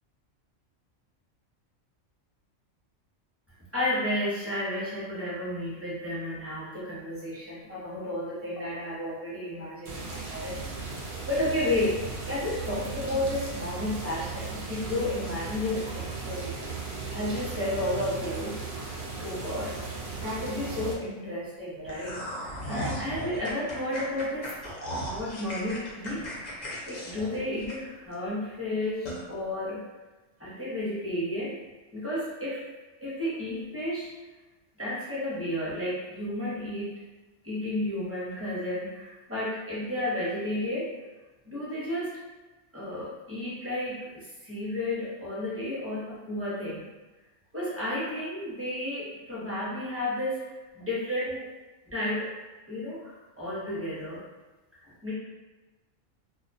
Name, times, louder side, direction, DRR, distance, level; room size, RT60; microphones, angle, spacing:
voice 1, 3.7-10.7 11.3-12.0 12.3-16.6 17.1-18.5 19.2-19.8 20.2-24.6 25.0-26.2 26.8-29.8 30.4-31.6 31.9-32.6 33.0-34.1 34.8-36.9 37.4-40.9 41.4-42.2 42.7-46.8 47.5-51.5 51.9-52.3 52.7-54.2 54.8-55.1, left 1 dB, 15° right, -9 dB, 0.6 m, -32 dB
sound 1, 9.8-20.9, right 4 dB, 65° right, 0.5 m, -36 dB
sound 2, 21.9-28.1 28.5-28.6 29.1-29.2, equal, 55° left, 0.5 m, -36 dB
2.2 x 2.2 x 2.6 m, 1.2 s
omnidirectional pair, 1.3 m